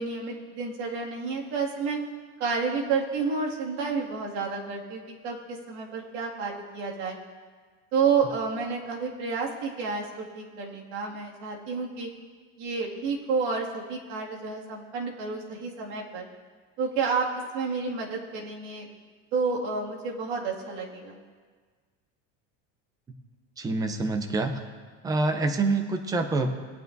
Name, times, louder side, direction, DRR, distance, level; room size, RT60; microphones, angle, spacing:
voice 1, 0.0-2.0 2.4-7.2 7.9-12.1 12.6-16.3 16.8-18.9 19.3-21.2, right 5 dB, 60° right, -2 dB, 2.2 m, -30 dB
voice 2, 23.6-24.6 25.0-26.5, right 3 dB, 10° right, 6 dB, 0.5 m, -26 dB
19.5 x 9.1 x 2.6 m, 1.5 s
cardioid pair, 175°, 34 cm